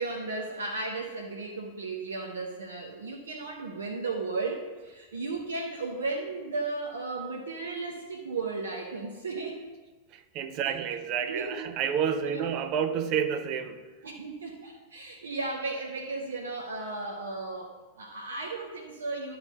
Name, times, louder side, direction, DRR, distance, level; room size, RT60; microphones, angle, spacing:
voice 1, 0.0-9.6 10.6-10.7 11.3-11.7 12.1-12.5 14.0-19.4, right 3 dB, 70° right, 1 dB, 0.8 m, -35 dB
voice 2, 10.1-13.9, right 8 dB, 40° right, 9 dB, 0.6 m, -30 dB
11.0 x 4.0 x 5.4 m, 1.3 s
figure-of-eight pair, 90°, 0 cm